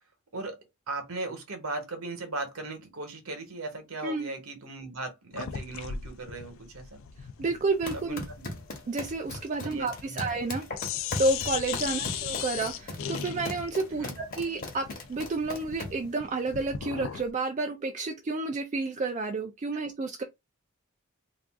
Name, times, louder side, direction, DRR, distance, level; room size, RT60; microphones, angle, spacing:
voice 1, 0.9-7.0 7.9-8.5 9.6-10.3 11.9-12.0 13.9-14.1, right 2 dB, 70° right, 1.0 m, -38 dB
sound 1, 5.3-10.5 10.7-17.3, left 9 dB, 60° left, 0.3 m, -38 dB
voice 2, 7.4-8.2 8.9-10.6 11.2-20.2, right 3 dB, 35° right, 0.3 m, -30 dB
sound 2, 7.7-16.1, left 2 dB, 40° left, 1.0 m, -39 dB
2.5 x 2.3 x 3.5 m
head